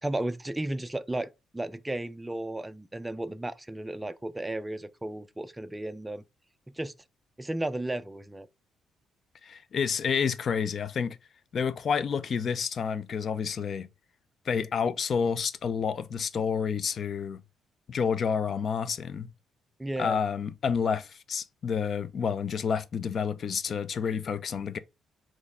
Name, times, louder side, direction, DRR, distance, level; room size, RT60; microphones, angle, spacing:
voice 1, 0.0-6.2 6.8-6.9 7.4-8.5 19.8-20.2, right 1 dB, 10° right, 0.4 m, -34 dB
voice 2, 9.4-11.2 11.5-13.9 14.5-17.4 17.9-19.3 20.0-24.8, left 6 dB, 55° left, 0.5 m, -29 dB
4.1 x 3.1 x 3.7 m
cardioid pair, 90°, 0 cm